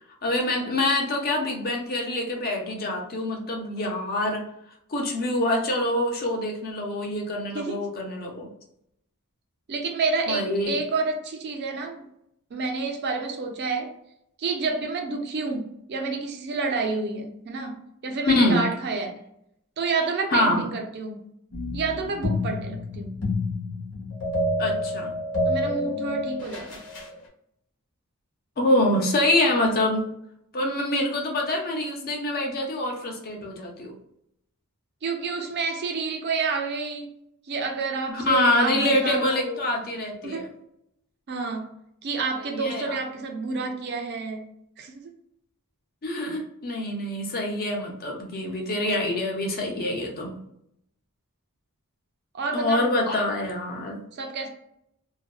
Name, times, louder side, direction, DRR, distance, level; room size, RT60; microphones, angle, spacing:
voice 1, 0.2-4.4 4.9-8.5 10.3-10.8 18.3-18.6 20.3-20.6 24.6-25.1 28.6-30.1 30.5-33.9 38.1-40.4 42.6-43.0 46.0-50.3 52.5-54.0, left 1 dB, 45° left, 0.6 m, -25 dB
voice 2, 7.5-7.9 9.7-12.1 12.5-13.9 14.4-17.8 18.0-19.2 19.8-21.2 21.7-23.1 25.5-26.8 35.0-37.2 37.5-39.7 40.2-40.5 41.3-41.7 42.0-44.5 44.8-45.1 52.3-52.9 54.1-54.5, right 4 dB, 50° right, 0.5 m, -29 dB
sound 1, 21.5-27.1, left 1 dB, 85° left, 1.0 m, -28 dB
2.6 x 2.2 x 2.3 m
head